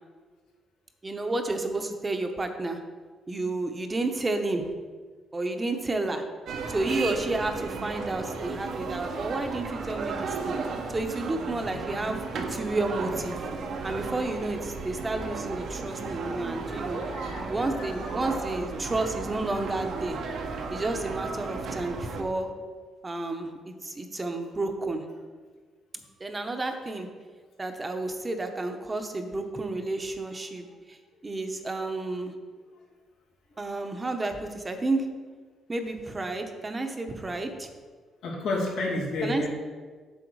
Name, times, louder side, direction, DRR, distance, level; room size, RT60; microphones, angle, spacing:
voice 1, 1.0-2.8 3.3-4.6 5.3-6.2 6.7-10.6 10.9-13.4 13.8-17.0 17.5-20.2 20.7-22.5 23.0-25.0 26.2-27.1 27.6-31.0 31.2-32.3 33.6-35.1 35.7-37.7 39.2-39.5, right 2 dB, 25° right, 6 dB, 1.0 m, -31 dB
sound 1, 6.5-22.2, right 4 dB, 70° right, 1.2 m, -34 dB
voice 2, 16.7-18.3 21.9-22.0 33.5-33.7 38.2-39.5, left 2 dB, 85° left, -3 dB, 2.6 m, -32 dB
8.0 x 6.7 x 4.8 m, 1.5 s
cardioid pair, 90°, 0 cm